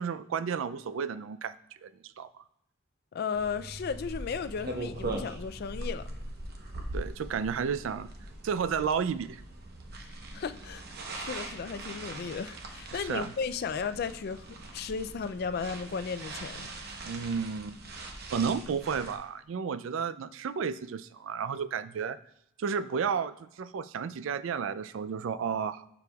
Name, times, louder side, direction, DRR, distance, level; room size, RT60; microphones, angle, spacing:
voice 1, 0.0-1.5 1.8-2.4 6.9-8.1 8.4-9.4 12.9-13.3 17.0-17.8 18.3-22.2 22.6-25.9, right 6 dB, 80° right, 14 dB, 0.4 m, -32 dB
voice 2, 3.1-6.0 10.3-10.8 11.1-14.5 14.7-16.7, left 6 dB, 50° left, 11 dB, 0.4 m, -35 dB
sound 1, 3.3-19.2, right 2 dB, 55° right, 0.9 m, -41 dB
12.0 x 4.8 x 2.3 m, 0.77 s
head